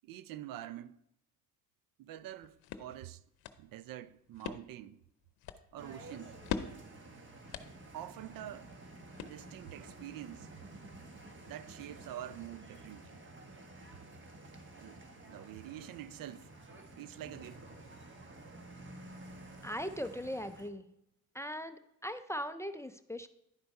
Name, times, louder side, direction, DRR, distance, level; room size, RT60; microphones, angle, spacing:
voice 1, 0.0-1.0 2.0-3.2 3.6-5.0 5.7-6.4 7.9-8.7 9.2-10.5 11.5-13.2 14.8-16.5 17.0-17.6, right 12 dB, 65° right, 0.5 m, -46 dB
sound 1, 2.2-9.8, left 8 dB, 75° left, 0.7 m, -45 dB
sound 2, 5.8-20.7, right 2 dB, 30° right, 1.3 m, -51 dB
voice 2, 19.6-20.9 21.3-23.3, equal, 10° left, 0.4 m, -39 dB
10.5 x 4.4 x 5.3 m
cardioid pair, 90°, 37 cm